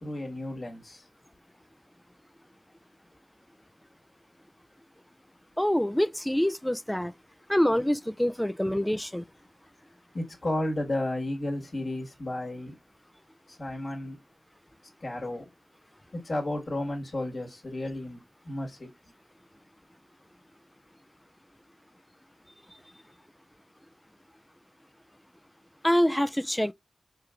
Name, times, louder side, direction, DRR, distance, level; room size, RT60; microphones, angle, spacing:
voice 1, 0.0-1.1 10.1-12.7 13.5-14.2 15.0-15.5 16.1-18.2 18.4-18.9, left 1 dB, 55° left, 1.7 m, -33 dB
voice 2, 5.6-7.1 7.5-9.3 25.8-26.7, equal, 10° left, 0.3 m, -25 dB
4.7 x 3.3 x 2.4 m
wide cardioid pair, 65°, 0 cm